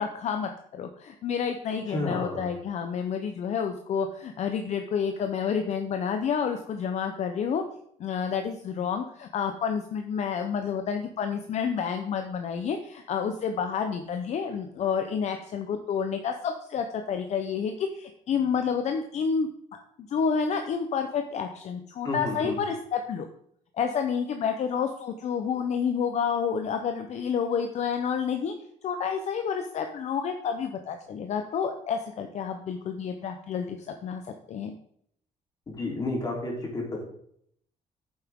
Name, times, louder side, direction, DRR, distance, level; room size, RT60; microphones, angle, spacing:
voice 1, 0.0-7.6 8.0-19.5 20.0-23.3 23.8-28.5 28.8-34.2 34.5-34.7, left 6 dB, 55° left, 6 dB, 0.8 m, -29 dB
voice 2, 1.9-2.5 22.0-22.6 35.7-37.0, left 2 dB, 30° left, -2 dB, 3.6 m, -31 dB
9.3 x 7.5 x 3.7 m, 0.67 s
cardioid pair, 140°, 14 cm